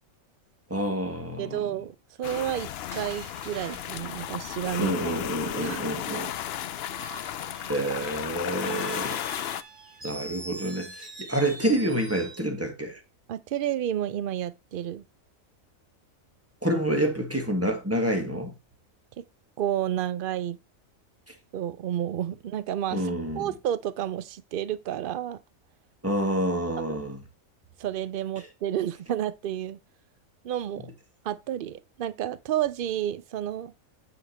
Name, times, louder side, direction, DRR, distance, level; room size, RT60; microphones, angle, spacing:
voice 1, 0.7-1.7 4.8-6.3 7.7-9.2 10.0-13.0 16.6-18.5 22.9-23.5 26.0-27.2, right 1 dB, 10° right, 1.6 m, -28 dB
voice 2, 1.4-5.1 5.4-5.8 13.3-15.0 19.6-20.6 21.5-25.4 26.9-27.0 27.8-29.8 30.4-30.9 31.2-33.7, right 11 dB, 75° right, 0.4 m, -31 dB
sound 1, 2.2-9.6, left 11 dB, 65° left, 0.6 m, -34 dB
Screech, 2.3-5.1 6.8-12.5, right 2 dB, 35° right, 1.8 m, -45 dB
8.7 x 5.2 x 4.3 m
omnidirectional pair, 1.5 m